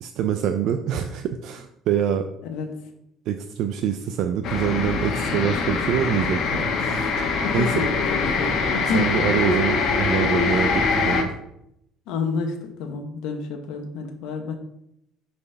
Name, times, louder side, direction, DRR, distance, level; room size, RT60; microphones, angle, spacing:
voice 1, 0.0-2.3 3.3-7.2 7.5-7.8 8.9-11.3, right 9 dB, 65° right, 6 dB, 0.4 m, -25 dB
sound 1, 4.4-11.2, left 4 dB, 60° left, 1.3 m, -23 dB
voice 2, 7.4-9.2 12.1-14.5, left 5 dB, 80° left, 4 dB, 0.9 m, -29 dB
5.5 x 4.2 x 5.4 m, 0.79 s
cardioid pair, 120°, 0 cm